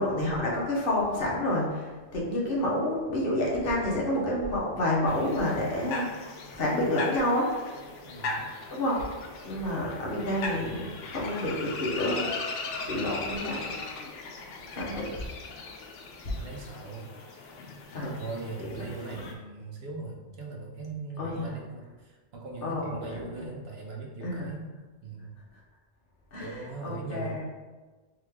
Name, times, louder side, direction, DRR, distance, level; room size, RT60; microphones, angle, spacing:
voice 1, 0.0-6.2 6.5-7.6 8.7-9.0 9.4-12.3 12.8-13.7 14.7-15.2 16.2-16.3 17.9-18.2 18.6-18.8 21.2-21.6 22.6-23.5 24.2-24.5 25.5-25.6 26.3-27.4, left 1 dB, 55° left, -4 dB, 1.2 m, -29 dB
sound 1, 5.1-19.3, left 3 dB, 85° left, 1.0 m, -38 dB
voice 2, 8.0-8.4 16.4-17.1 18.2-24.7 25.0-25.3 26.3-27.4, right 3 dB, 65° right, -1 dB, 1.0 m, -40 dB
3.6 x 3.3 x 3.5 m, 1.3 s
omnidirectional pair, 1.2 m